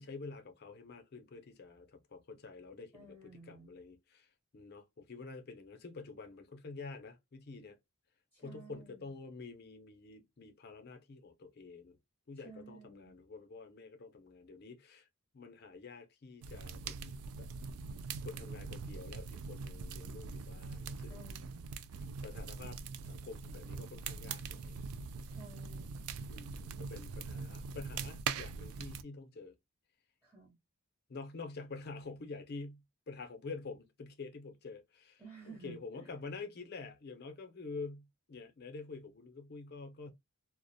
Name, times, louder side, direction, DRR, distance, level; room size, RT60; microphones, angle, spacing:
voice 1, 0.0-4.3 4.5-7.8 8.4-12.0 12.3-15.1 15.3-17.5 18.2-21.2 21.9-22.8 23.0-24.7 26.2-29.6 31.1-40.1, left 4 dB, 45° left, 0.5 m, -48 dB
voice 2, 2.9-3.7 8.3-9.1 12.4-13.2 21.1-21.7 25.2-26.1 30.2-30.6 35.2-36.1, right 3 dB, 10° right, 0.7 m, -54 dB
sound 1, 16.4-29.0, right 5 dB, 90° right, 0.3 m, -42 dB
2.4 x 2.0 x 2.6 m
head